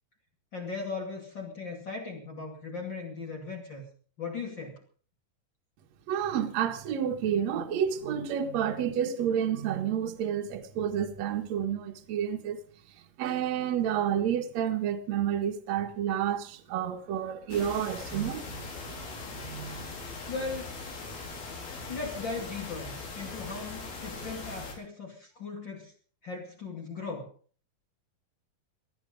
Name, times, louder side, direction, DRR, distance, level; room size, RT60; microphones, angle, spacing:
voice 1, 0.5-3.8 4.2-4.8 20.3-20.7 21.9-25.9 26.2-27.3, left 4 dB, 35° left, 2.7 m, -38 dB
voice 2, 6.1-12.6 13.2-18.6 19.4-19.9, right 9 dB, 55° right, 2.3 m, -30 dB
sound 1, 17.5-24.7, left 3 dB, 75° left, 6.0 m, -40 dB
19.0 x 12.5 x 5.2 m
omnidirectional pair, 4.4 m